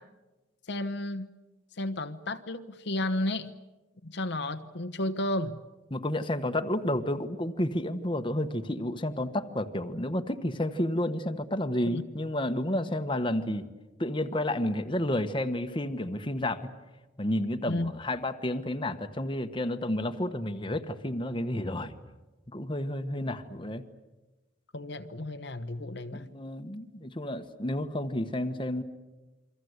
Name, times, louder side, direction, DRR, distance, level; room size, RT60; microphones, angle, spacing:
voice 1, 0.7-1.3 1.8-3.5 4.0-5.6 11.9-12.0 17.7-17.9 24.7-26.3, left 1 dB, 65° left, 9 dB, 1.1 m, -32 dB
voice 2, 5.9-13.7 14.0-16.7 17.2-21.9 22.5-23.8 26.1-28.8, left 1 dB, 25° left, 7 dB, 1.3 m, -31 dB
28.5 x 24.0 x 8.1 m, 1.1 s
head